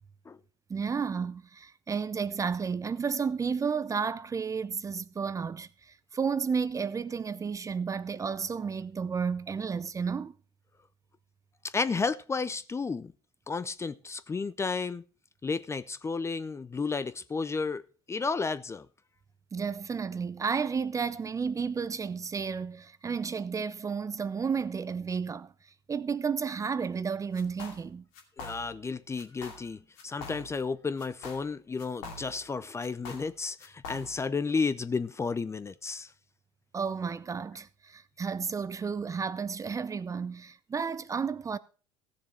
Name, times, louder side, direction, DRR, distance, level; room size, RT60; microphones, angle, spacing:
voice 1, 0.7-10.3 19.5-25.5 25.9-28.0 36.7-41.6, right 6 dB, 25° right, 0.6 m, -32 dB
voice 2, 11.7-13.1 13.5-15.0 15.4-17.8 18.1-18.9 28.4-36.1, left 4 dB, 20° left, 0.6 m, -32 dB
sound 1, 27.3-27.9 28.1-28.9 29.2-29.7 30.0-30.7 31.0-32.5 32.8-34.3, left 3 dB, 65° left, 2.5 m, -45 dB
15.5 x 7.0 x 4.5 m
hypercardioid pair, 70°, 14 cm